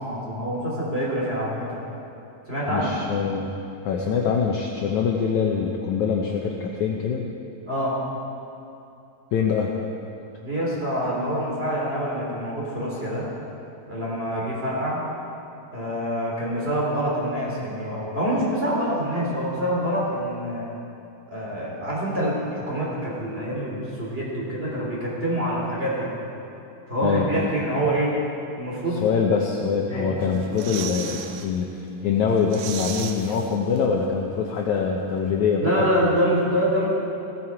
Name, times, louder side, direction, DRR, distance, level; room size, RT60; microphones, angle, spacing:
voice 1, 0.0-1.8 2.5-2.9 7.6-8.0 10.4-13.3 13.9-15.0 15.7-20.7 21.3-26.1 26.9-28.2 28.5-29.0 29.9-30.1 35.6-36.9, equal, 20° right, -6 dB, 2.3 m, -26 dB
voice 2, 2.7-3.5 3.8-7.3 9.3-9.7 27.0-27.5 29.0-35.7 36.0-36.1, left 6 dB, 85° left, 0 dB, 1.7 m, -24 dB
sound 1, 30.2-31.5 31.9-32.0 32.3-34.1 34.3-34.4, right 8 dB, 75° right, 2.4 m, -36 dB
16.5 x 14.5 x 4.7 m, 2.7 s
omnidirectional pair, 4.5 m